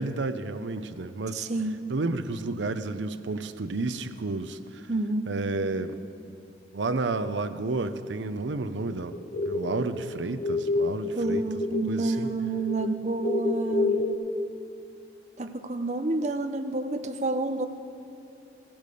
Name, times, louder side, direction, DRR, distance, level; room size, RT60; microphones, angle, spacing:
voice 1, 0.0-1.5 1.9-4.9 5.3-6.0 6.3-6.4 6.7-9.2 9.4-11.5 11.9-12.3, right 3 dB, 90° right, 11 dB, 0.7 m, -31 dB
voice 2, 1.3-1.9 4.9-5.3 11.2-14.0 15.4-17.7, right 2 dB, 40° right, 7 dB, 0.6 m, -29 dB
sound 1, 8.8-12.0 12.3-14.1, left 3 dB, 45° left, 0.9 m, -28 dB
16.5 x 8.7 x 6.8 m, 2.6 s
head